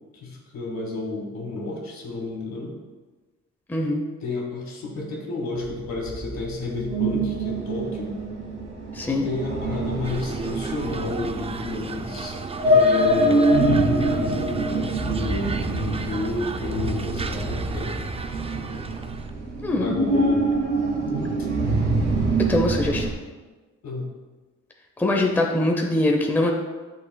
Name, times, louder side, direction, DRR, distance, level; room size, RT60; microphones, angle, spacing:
voice 1, 0.1-2.8 4.2-8.2 9.0-12.4 12.6-18.0 19.7-20.5 23.8-24.1, left 2 dB, 65° left, -1 dB, 2.0 m, -31 dB
voice 2, 3.7-4.0 8.9-9.3 19.6-20.0 22.5-23.0 25.0-26.5, left 1 dB, 5° left, 0 dB, 0.7 m, -22 dB
sound 1, 5.6-23.1, right 1 dB, 65° right, 1.7 m, -25 dB
sound 2, 10.0-19.3, right 4 dB, 20° right, 0.4 m, -35 dB
9.3 x 6.1 x 2.3 m, 1.3 s
cardioid pair, 90°, 30 cm